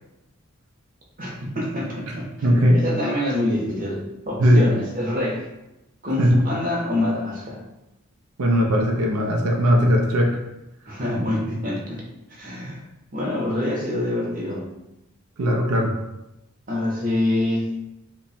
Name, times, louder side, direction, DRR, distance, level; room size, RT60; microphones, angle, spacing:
voice 1, 1.2-5.5 6.0-7.6 10.8-12.0 12.3-12.8 13.1-14.7 16.7-17.7, left 1 dB, 40° right, -2 dB, 0.8 m, -26 dB
voice 2, 2.4-2.8 4.4-4.7 6.2-6.4 8.4-10.4 15.4-15.9, equal, 85° right, 0 dB, 0.5 m, -18 dB
2.9 x 2.2 x 4.1 m, 0.93 s
head